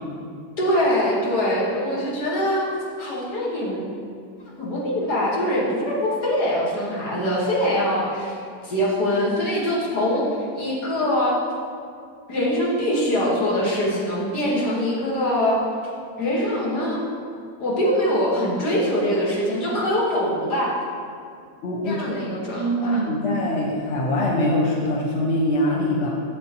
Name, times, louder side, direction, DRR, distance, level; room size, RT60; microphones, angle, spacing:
voice 1, 0.6-2.7 3.0-3.8 4.6-8.4 8.6-10.2 10.5-11.4 12.3-15.6 16.2-17.0 17.6-20.7 21.8-23.0, equal, 80° left, -5 dB, 2.2 m, -23 dB
voice 2, 21.6-22.1 22.6-26.1, left 1 dB, 50° left, -3 dB, 1.5 m, -23 dB
12.5 x 7.1 x 3.0 m, 2.3 s
omnidirectional pair, 1.7 m